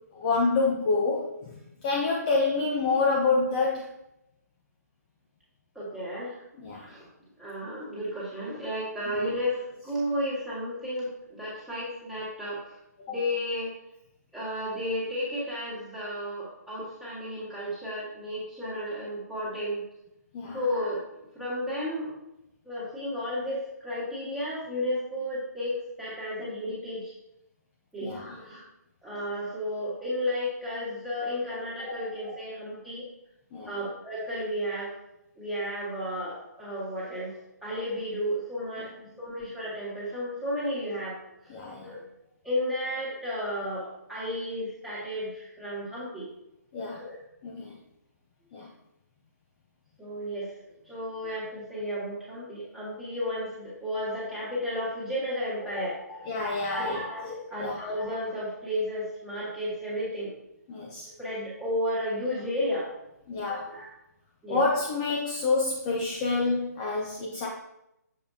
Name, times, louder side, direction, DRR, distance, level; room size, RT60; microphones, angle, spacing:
voice 1, 0.1-1.5 1.8-3.9 6.6-6.9 9.1-9.3 20.3-20.6 28.0-28.4 33.5-33.7 41.5-42.0 46.7-47.0 47.4-47.7 48.5-48.7 56.3-57.0 57.6-57.9 60.7-61.1 63.3-63.6 64.5-67.5, left 3 dB, 25° left, -3 dB, 0.7 m, -27 dB
voice 2, 5.8-6.4 6.9-7.1 7.4-12.6 13.1-13.7 14.3-19.8 20.5-21.0 21.4-22.1 22.7-27.1 27.9-28.6 29.0-33.0 33.7-34.9 35.4-37.3 37.6-38.9 39.2-41.2 41.8-42.0 42.4-46.3 46.9-47.2 50.0-50.5 50.9-56.2 56.7-60.3 61.2-62.9 63.7-63.9 64.4-64.6, left 1 dB, ahead, -10 dB, 1.9 m, -33 dB
7.0 x 5.0 x 2.7 m, 0.84 s
figure-of-eight pair, 150°, 9 cm